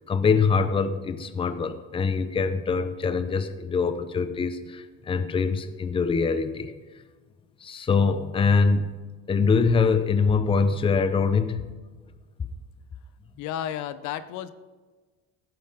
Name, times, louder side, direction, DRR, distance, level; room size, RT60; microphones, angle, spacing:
voice 1, 0.0-6.7 7.6-9.0 9.3-11.6, left 5 dB, 20° left, 10 dB, 0.7 m, -24 dB
voice 2, 13.4-14.5, left 10 dB, 75° left, 13 dB, 0.8 m, -32 dB
16.0 x 9.4 x 5.1 m, 1.4 s
cardioid pair, 145°, 29 cm